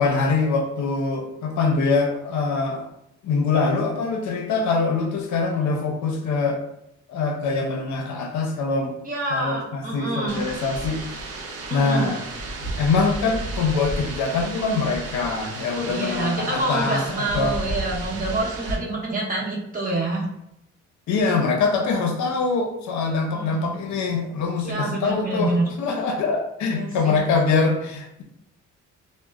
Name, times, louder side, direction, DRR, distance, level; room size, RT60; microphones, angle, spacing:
voice 1, 0.0-2.9 3.2-6.6 7.1-9.0 9.3-11.3 11.7-12.2 12.8-17.5 21.1-28.2, left 4 dB, 70° left, 3 dB, 0.6 m, -24 dB
voice 2, 9.0-10.4 11.7-12.0 15.9-20.3 23.3-23.8 24.6-25.6 26.6-27.1, right 2 dB, 30° right, -4 dB, 0.8 m, -27 dB
sound 1, 10.3-18.8, right 2 dB, 50° right, 0.5 m, -33 dB
2.9 x 2.0 x 2.3 m, 0.80 s
cardioid pair, 90°, 30 cm